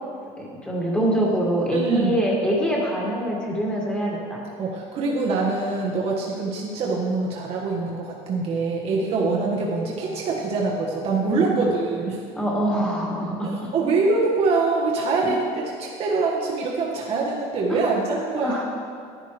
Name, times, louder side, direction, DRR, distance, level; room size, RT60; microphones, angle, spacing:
voice 1, 0.4-4.4 9.2-9.3 11.3-11.6 12.3-13.7 15.2-15.4 17.7-17.8 18.4-18.6, equal, 5° left, -4 dB, 2.1 m, -24 dB
voice 2, 1.7-2.3 4.6-12.2 13.4-15.5 15.7-18.6, right 3 dB, 45° right, -3 dB, 1.3 m, -24 dB
11.0 x 8.9 x 3.3 m, 2.4 s
cardioid pair, 130°, 14 cm